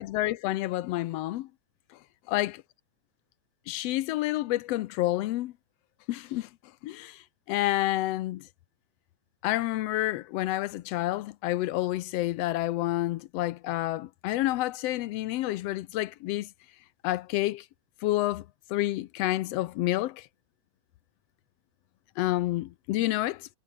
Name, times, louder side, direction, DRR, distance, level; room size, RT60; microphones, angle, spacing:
voice 1, 0.0-1.5 2.3-2.6 3.7-5.5 6.1-6.5 6.8-8.5 9.4-16.5 17.0-17.6 18.0-18.4 18.7-20.3 22.2-23.5, left 16 dB, 85° left, 1.4 m, -29 dB
omnidirectional pair, 3.6 m